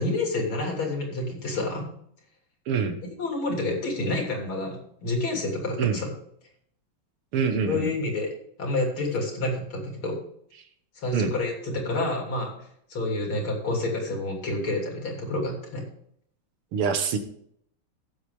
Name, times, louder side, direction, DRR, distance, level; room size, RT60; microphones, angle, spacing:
voice 1, 0.0-1.9 3.2-6.1 7.7-8.3 8.6-10.2 11.0-12.5 12.9-15.9, left 2 dB, 70° left, 0 dB, 3.9 m, -28 dB
voice 2, 2.7-3.0 5.8-6.0 7.3-7.9 11.1-11.3 16.7-17.2, right 6 dB, 90° right, 8 dB, 2.2 m, -25 dB
16.5 x 7.6 x 3.5 m, 0.67 s
omnidirectional pair, 2.3 m